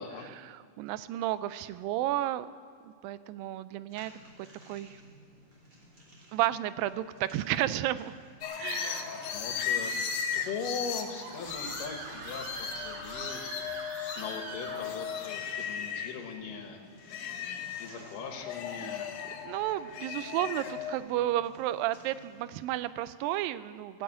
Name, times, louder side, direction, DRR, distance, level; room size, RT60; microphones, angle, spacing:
voice 1, 0.5-2.5 2.8-4.1 4.7-5.0 6.3-8.2 8.6-9.4 18.8-18.9 19.4-24.0, right 14 dB, 85° right, 15 dB, 2.3 m, -32 dB
sound 1, 3.9-22.7, equal, 30° right, 3.3 m, -56 dB
sound 2, 8.4-16.2 16.7-21.0, left 7 dB, 90° left, 2.9 m, -37 dB
voice 2, 8.8-9.9 10.3-13.4 14.2-16.8 17.8-19.2, left 5 dB, 75° left, 4 dB, 2.8 m, -40 dB
Screaming, 10.8-15.3, right 3 dB, 70° right, 3.3 m, -42 dB
17.5 x 7.2 x 8.7 m, 2.2 s
omnidirectional pair, 4.0 m